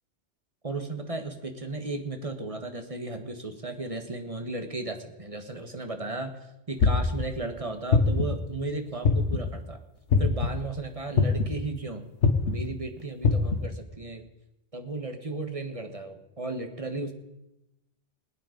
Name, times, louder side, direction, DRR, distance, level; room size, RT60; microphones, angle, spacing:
voice 1, 0.6-6.3 6.7-9.8 10.2-12.0 12.4-14.2 14.7-17.1, right 2 dB, 30° right, 6 dB, 1.5 m, -35 dB
sound 1, 6.8-7.2 7.9-8.4 9.0-9.5 10.1-10.5 11.2-11.6 12.2-12.5 13.2-13.6, left 5 dB, 85° left, 1.7 m, -21 dB
21.0 x 9.2 x 5.2 m, 0.91 s
omnidirectional pair, 1.2 m